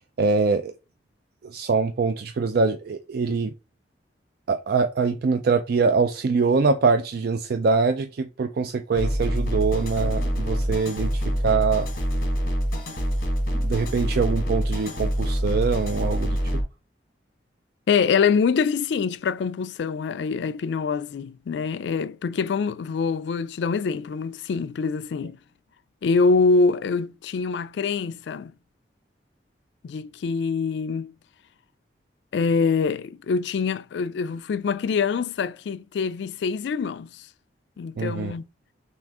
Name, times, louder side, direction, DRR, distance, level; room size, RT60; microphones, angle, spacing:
voice 1, 0.2-0.7 1.4-3.5 4.5-11.9 13.5-16.6 38.0-38.3, right 4 dB, 60° right, 0.4 m, -24 dB
sound 1, 9.0-16.6, equal, 50° left, 1.6 m, -25 dB
voice 2, 17.9-25.4 26.0-28.5 29.8-31.1 32.3-37.3 37.8-38.4, left 5 dB, 70° left, 0.3 m, -24 dB
6.1 x 2.4 x 3.6 m
head